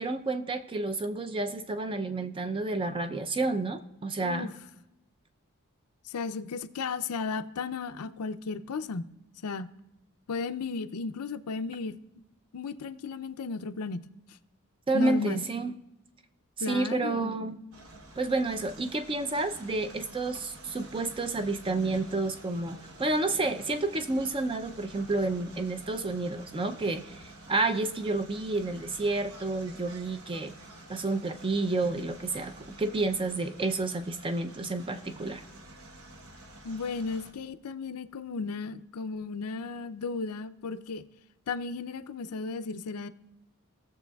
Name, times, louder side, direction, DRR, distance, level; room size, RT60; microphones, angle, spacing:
voice 1, 0.0-4.5 14.9-15.7 16.6-17.6 18.2-30.5 30.9-32.5 32.8-35.4, right 2 dB, 25° right, 8 dB, 0.5 m, -30 dB
voice 2, 4.2-4.5 6.1-9.1 9.4-9.7 10.3-12.0 12.5-14.0 14.9-15.4 16.6-17.5 36.6-41.0 41.5-43.1, left 4 dB, 85° left, 11 dB, 0.5 m, -34 dB
sound 1, 17.7-37.3, right 2 dB, 75° right, 1.1 m, -49 dB
18.0 x 6.9 x 2.3 m, 0.93 s
head